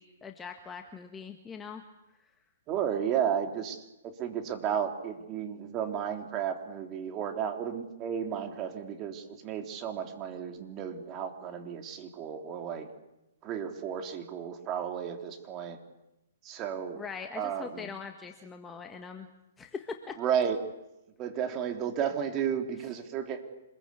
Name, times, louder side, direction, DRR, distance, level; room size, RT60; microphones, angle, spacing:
voice 1, 0.0-1.8 16.9-19.3 19.6-20.2, left 5 dB, 15° left, 4 dB, 1.7 m, -42 dB
voice 2, 2.7-12.9 13.4-15.8 16.4-17.0 17.3-17.9 20.2-20.7 21.2-23.4, right 8 dB, 30° right, 5 dB, 3.4 m, -33 dB
27.0 x 21.5 x 8.5 m, 0.93 s
hypercardioid pair, 135°, 0 cm